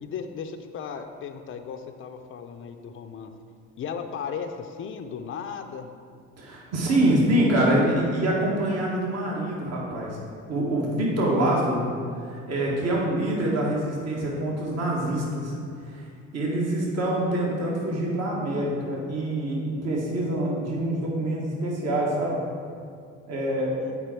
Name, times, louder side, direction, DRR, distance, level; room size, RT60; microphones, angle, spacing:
voice 1, 0.0-3.3 3.8-5.9 23.8-23.9, left 6 dB, 35° left, 6 dB, 0.6 m, -36 dB
voice 2, 6.4-10.2 10.5-11.8 12.2-15.5 15.9-16.0 16.3-22.4 23.3-23.9, right 1 dB, 45° right, -3 dB, 1.7 m, -25 dB
7.9 x 4.6 x 4.5 m, 2.3 s
hypercardioid pair, 70°, 36 cm